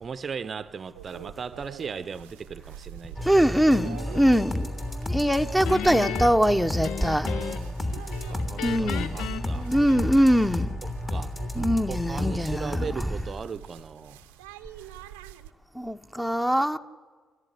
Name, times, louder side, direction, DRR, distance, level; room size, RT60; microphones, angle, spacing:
voice 1, 0.0-3.3 4.1-4.3 7.3-7.8 8.3-9.7 11.1-11.3 11.9-14.2, right 6 dB, 50° right, 0.7 m, -37 dB
sound 1, 0.9-15.5, right 11 dB, 90° right, 0.7 m, -45 dB
sound 2, 3.2-13.0, left 1 dB, 30° left, 3.2 m, -32 dB
voice 2, 3.2-7.3 8.6-10.8 11.5-13.1 15.7-16.8, equal, ahead, 1.0 m, -23 dB
Guitar, 5.6-7.8 8.1-10.4, left 9 dB, 75° left, 0.6 m, -35 dB
27.0 x 14.0 x 10.0 m
hypercardioid pair, 50°, 0 cm